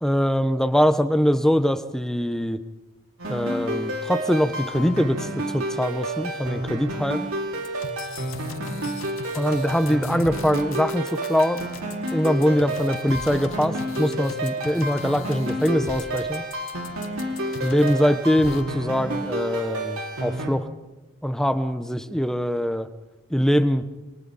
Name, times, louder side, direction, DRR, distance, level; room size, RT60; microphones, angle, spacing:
voice 1, 0.0-2.6 3.3-5.3 5.5-7.2 9.3-11.7 12.1-16.4 17.6-20.7 21.2-22.9 23.3-23.8, equal, ahead, 9 dB, 1.0 m, -23 dB
sound 1, 3.2-20.5, right 1 dB, 80° right, 5.0 m, -30 dB
sound 2, 7.6-18.1 18.4-18.6, left 3 dB, 70° left, 1.7 m, -38 dB
28.0 x 27.5 x 4.2 m, 1.1 s
head